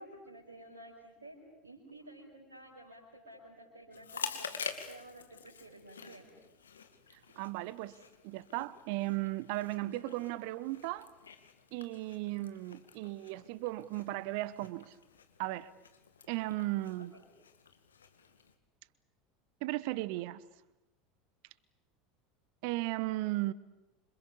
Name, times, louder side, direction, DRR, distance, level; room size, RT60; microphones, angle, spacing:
voice 1, 0.0-4.5 4.9-6.3 17.0-17.2, right 1 dB, 75° right, 5.8 m, -52 dB
Chewing mastication, 3.9-18.5, left 6 dB, 75° left, 2.2 m, -48 dB
voice 2, 7.4-8.0 8.2-11.1 11.7-14.9 15.4-15.7 16.3-17.1 19.6-20.4 22.6-23.5, right 18 dB, 55° right, 1.0 m, -36 dB
28.0 x 26.5 x 7.1 m
figure-of-eight pair, 75°, 0 cm